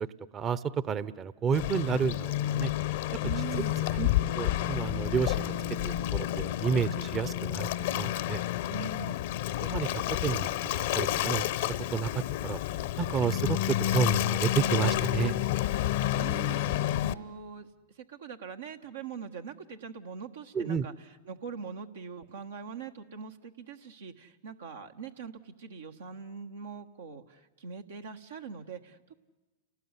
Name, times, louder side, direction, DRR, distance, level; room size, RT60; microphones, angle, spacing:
voice 1, 0.3-2.7 3.6-3.7 3.9-4.1 4.3-5.5 5.8-8.4 9.6-10.5 11.0-11.4 11.9-12.6 13.0-15.4 20.5-20.8, right 7 dB, 30° right, 17 dB, 0.8 m, -30 dB
Waves surf, 1.5-17.1, left 13 dB, 65° left, 0.9 m, -30 dB
voice 2, 3.2-3.8 8.7-9.2 16.1-17.7 17.9-29.1, right 5 dB, 80° right, 4 dB, 1.4 m, -42 dB
29.5 x 19.0 x 9.8 m, 1.1 s
hypercardioid pair, 110°, 0 cm